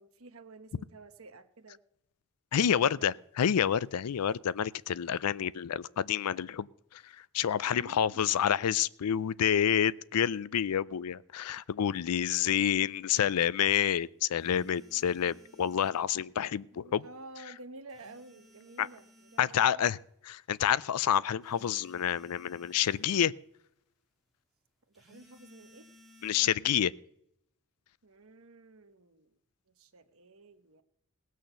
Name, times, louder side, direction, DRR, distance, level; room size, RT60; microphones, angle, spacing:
voice 1, 0.0-1.8 2.6-3.2 7.8-8.3 16.8-19.9 24.9-25.9 28.0-29.3 29.8-30.8, right 2 dB, 65° right, 1.1 m, -51 dB
voice 2, 2.5-6.7 6.9-7.0 7.3-17.0 18.8-18.9 19.4-20.0 20.3-23.3 26.2-26.9, left 9 dB, 85° left, 0.4 m, -28 dB
sound 1, 14.4-16.1 17.9-19.6 21.4-23.1 24.9-26.5, left 1 dB, ahead, 2.5 m, -59 dB
19.0 x 6.4 x 6.8 m
head